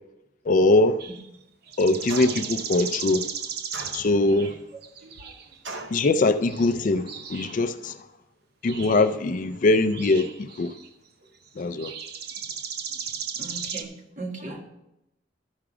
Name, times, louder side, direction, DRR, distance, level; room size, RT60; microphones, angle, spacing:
voice 1, 0.4-1.0 1.8-3.3 3.9-4.6 5.9-8.1 8.6-10.7 11.6-11.9, left 2 dB, 45° left, 0.4 m, -22 dB
sound 1, 1.0-1.4 1.7-4.5 4.8-5.6 6.0-6.1 6.4-7.6 8.6-9.1 9.7-10.9 11.5-13.8, right 7 dB, 60° right, 0.6 m, -36 dB
sound 2, 2.1-2.6 3.7-4.4 5.6-6.1, right 3 dB, 90° right, 0.9 m, -37 dB
voice 2, 5.0-5.3 12.9-13.0 13.4-14.6, right 2 dB, 40° right, 1.5 m, -38 dB
12.5 x 4.8 x 5.0 m
head